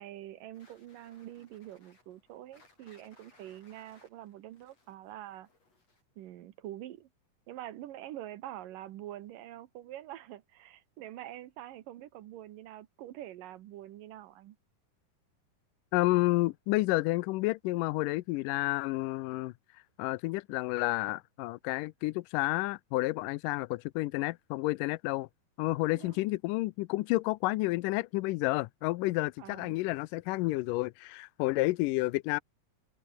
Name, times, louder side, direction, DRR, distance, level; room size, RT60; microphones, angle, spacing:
voice 1, 0.0-5.5 6.2-7.1 7.5-14.6 26.0-26.2 29.4-29.8, right 13 dB, 80° right, 2.7 m, -45 dB
sound 1, 0.5-6.2, left 3 dB, 45° left, 9.1 m, -64 dB
voice 2, 15.9-19.5 20.0-25.3 25.6-32.4, left 20 dB, 80° left, 2.1 m, -30 dB
omnidirectional pair, 3.9 m